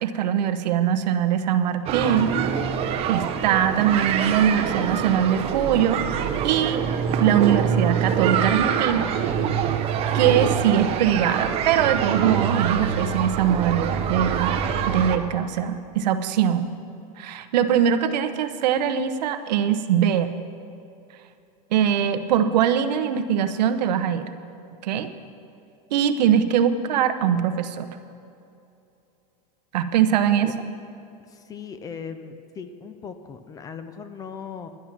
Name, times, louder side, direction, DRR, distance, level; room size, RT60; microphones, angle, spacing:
voice 1, 0.0-2.3 3.1-6.1 6.4-6.8 7.2-9.6 10.1-14.6 14.9-16.7 17.2-20.3 21.7-24.3 24.8-25.1 25.9-27.9 29.7-30.6, right 9 dB, 90° right, 10 dB, 0.8 m, -22 dB
sound 1, 1.9-15.2, right 8 dB, 30° right, 0.6 m, -25 dB
voice 2, 31.3-34.7, left 6 dB, 15° left, 10 dB, 0.4 m, -38 dB
11.0 x 11.0 x 5.9 m, 2.6 s
supercardioid pair, 160°, 21 cm